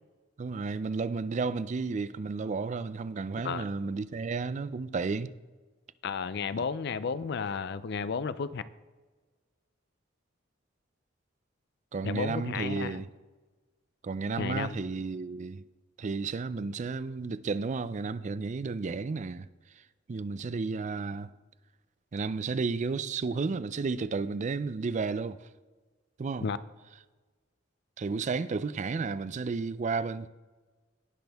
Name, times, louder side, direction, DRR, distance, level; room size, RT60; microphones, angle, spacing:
voice 1, 0.4-5.3 11.9-13.1 14.0-15.6 16.0-19.5 20.1-21.3 22.1-25.4 26.2-26.5 28.0-30.3, right 4 dB, 40° right, 0.4 m, -32 dB
voice 2, 6.0-8.6 12.0-13.0 14.4-14.8 26.4-26.6, left 5 dB, 60° left, 0.5 m, -33 dB
18.0 x 6.1 x 3.5 m
head